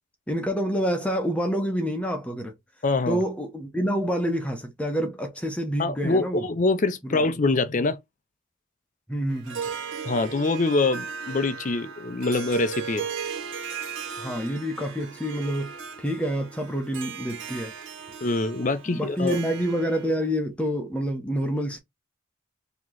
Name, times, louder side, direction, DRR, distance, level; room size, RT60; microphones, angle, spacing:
voice 1, 0.3-2.5 3.1-6.5 7.0-7.3 9.1-9.6 14.2-17.7 18.9-21.8, equal, 5° left, 0.8 m, -27 dB
voice 2, 2.8-3.2 5.8-8.0 10.0-13.1 18.2-19.4, left 3 dB, 35° left, 0.5 m, -24 dB
Harp, 9.3-20.2, right 6 dB, 65° right, 0.8 m, -37 dB
3.0 x 2.9 x 3.7 m
head